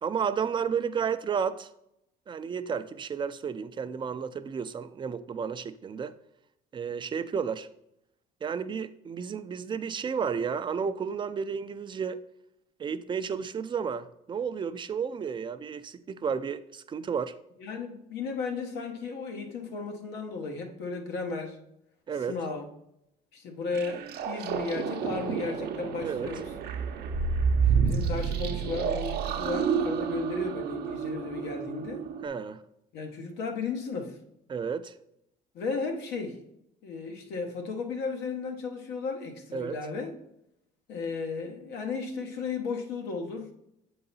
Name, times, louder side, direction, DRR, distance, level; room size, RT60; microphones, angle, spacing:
voice 1, 0.0-1.7 2.3-6.1 6.7-7.7 8.4-12.2 12.8-17.3 22.1-22.4 26.0-26.3 32.2-32.6 34.5-34.9 39.5-39.8, right 6 dB, 30° right, 0.4 m, -32 dB
voice 2, 17.6-21.6 22.3-22.7 23.3-26.5 27.7-32.1 32.9-34.2 35.5-36.4 36.8-40.1 40.9-43.5, left 4 dB, 80° left, 1.1 m, -34 dB
sound 1, 23.7-32.3, right 6 dB, 70° right, 0.7 m, -29 dB
7.7 x 3.9 x 4.0 m
cardioid pair, 110°, 17 cm